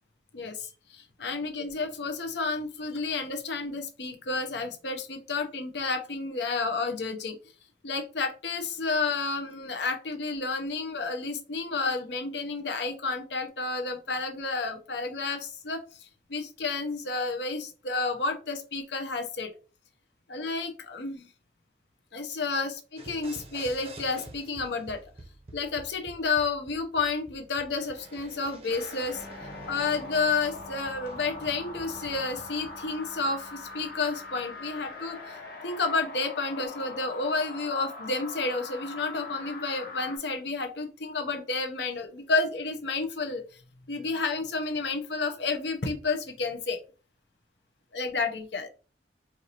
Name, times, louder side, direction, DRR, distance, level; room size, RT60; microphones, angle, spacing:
voice 1, 0.3-7.4 7.8-19.5 20.3-21.3 22.1-25.0 25.5-29.3 29.7-35.4 35.6-43.4 43.9-46.8 47.9-48.7, left 3 dB, 75° left, 5 dB, 0.8 m, -31 dB
sound 1, 23.0-32.8, right 2 dB, 35° right, 0.6 m, -49 dB
sound 2, 28.7-40.2, left 3 dB, 55° left, 1.1 m, -42 dB
sound 3, 29.1-35.6, left 2 dB, 10° left, 0.4 m, -52 dB
4.6 x 2.5 x 2.9 m, 0.35 s
head